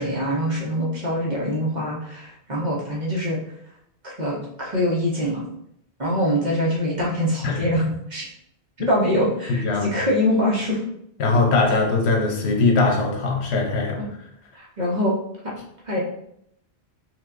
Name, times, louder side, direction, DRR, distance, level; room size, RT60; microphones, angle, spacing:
voice 1, 0.0-3.4 4.0-5.4 6.0-8.3 8.9-10.8 11.7-11.8 14.0-14.1 14.5-15.1 15.9-16.0, equal, 45° right, -4 dB, 1.2 m, -24 dB
voice 2, 9.5-9.9 11.2-14.0, left 3 dB, 80° left, 1 dB, 1.1 m, -21 dB
5.7 x 2.7 x 2.5 m, 0.72 s
omnidirectional pair, 1.1 m